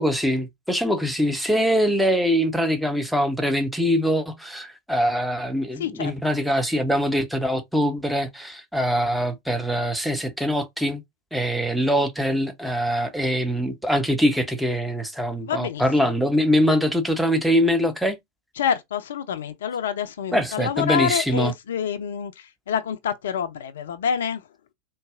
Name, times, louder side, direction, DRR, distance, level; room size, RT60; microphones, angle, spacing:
voice 1, 0.0-11.0 11.3-18.2 20.3-21.5, equal, ahead, 0.7 m, -23 dB
voice 2, 5.8-6.1 15.4-16.1 18.6-24.4, left 8 dB, 60° left, 0.4 m, -27 dB
3.9 x 2.3 x 2.4 m
figure-of-eight pair, 90°, 0 cm